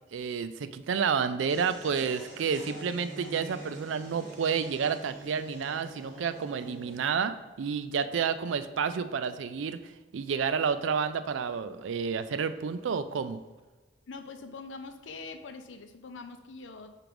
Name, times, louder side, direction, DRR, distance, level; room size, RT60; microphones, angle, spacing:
voice 1, 0.1-9.8 10.1-13.4, right 6 dB, 85° right, 12 dB, 0.4 m, -30 dB
sound 1, 1.5-7.1, equal, 45° right, 1.8 m, -46 dB
voice 2, 14.1-17.0, left 4 dB, 85° left, 8 dB, 0.6 m, -43 dB
4.9 x 4.6 x 5.1 m, 1.2 s
head